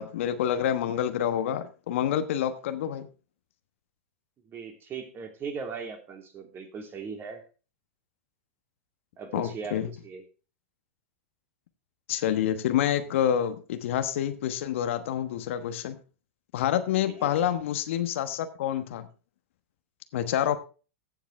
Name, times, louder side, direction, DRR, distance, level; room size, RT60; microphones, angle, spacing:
voice 1, 0.0-3.1 9.3-9.9 12.1-16.0 16.5-19.1 20.1-20.6, left 10 dB, 65° left, 10 dB, 1.2 m, -27 dB
voice 2, 4.5-7.4 9.2-9.8 10.0-10.2 17.1-17.3, right 5 dB, 30° right, 5 dB, 2.7 m, -38 dB
15.0 x 7.3 x 3.3 m, 0.34 s
hypercardioid pair, 105°, 7 cm